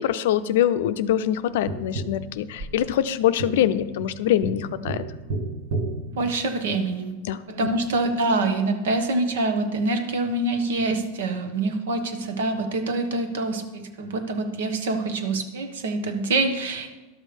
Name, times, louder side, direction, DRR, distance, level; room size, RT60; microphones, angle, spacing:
voice 1, 0.0-5.0 7.2-7.4, left 11 dB, 75° left, 12 dB, 0.5 m, -23 dB
Tap, 1.7-7.0 9.6-9.7, right 2 dB, 55° right, 1.2 m, -33 dB
voice 2, 6.1-7.1 7.5-16.9, right 2 dB, 85° right, 7 dB, 1.2 m, -25 dB
11.5 x 6.4 x 5.2 m, 1.2 s
supercardioid pair, 130°, 0 cm